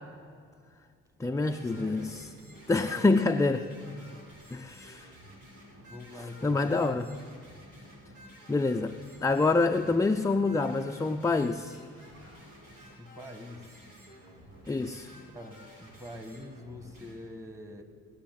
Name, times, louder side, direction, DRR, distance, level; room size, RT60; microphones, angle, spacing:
voice 1, 1.2-2.2 2.7-3.7 4.5-5.1 6.4-7.0 8.5-11.8 14.7-15.1, left 3 dB, 10° left, 6 dB, 0.4 m, -26 dB
sound 1, 1.4-17.1, equal, 80° right, 5.7 m, -52 dB
voice 2, 1.7-2.1 2.8-3.1 3.9-4.2 5.9-7.2 13.0-13.8 15.3-17.8, left 1 dB, 10° right, 7 dB, 1.6 m, -45 dB
20.0 x 7.3 x 9.3 m, 2.1 s
cardioid pair, 90°, 30 cm